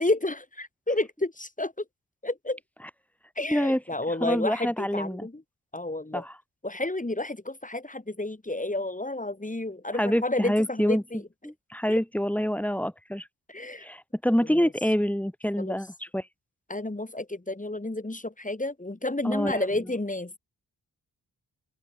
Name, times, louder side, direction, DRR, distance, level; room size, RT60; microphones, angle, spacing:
voice 1, 0.0-1.8 2.2-2.6 3.4-5.4 5.7-6.3 6.6-11.2 11.9-12.0 13.5-13.8 14.5-14.7 15.6-15.8 16.7-20.4, left 2 dB, 20° left, 5.7 m, -31 dB
voice 2, 3.5-3.8 4.2-5.3 6.1-6.3 10.0-11.0 11.4-13.3 13.8-16.3 19.2-19.7, equal, 5° left, 3.4 m, -26 dB
open air
cardioid pair, 50°, 39 cm